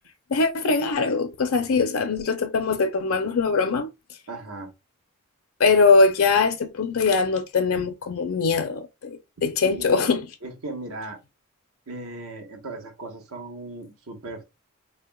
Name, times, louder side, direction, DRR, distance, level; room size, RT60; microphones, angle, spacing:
voice 1, 0.3-3.9 5.6-10.3, left 4 dB, 70° left, 0.5 m, -22 dB
voice 2, 4.3-4.7 9.6-10.1 10.4-11.2 11.9-14.4, right 2 dB, 75° right, 1.1 m, -37 dB
4.2 x 3.3 x 2.2 m
head